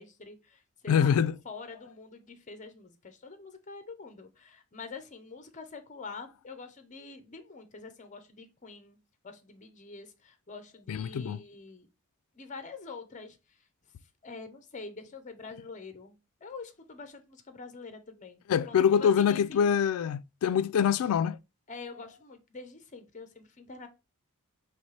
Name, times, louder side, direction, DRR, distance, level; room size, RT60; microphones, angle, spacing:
voice 1, 0.0-1.2 1.4-9.0 9.2-11.9 12.3-13.6 14.2-16.2 16.4-19.6 21.7-23.9, left 4 dB, 35° left, 0.7 m, -45 dB
voice 2, 0.9-1.4 10.9-11.4 18.5-21.4, left 8 dB, 75° left, 0.3 m, -25 dB
4.2 x 3.1 x 3.2 m
head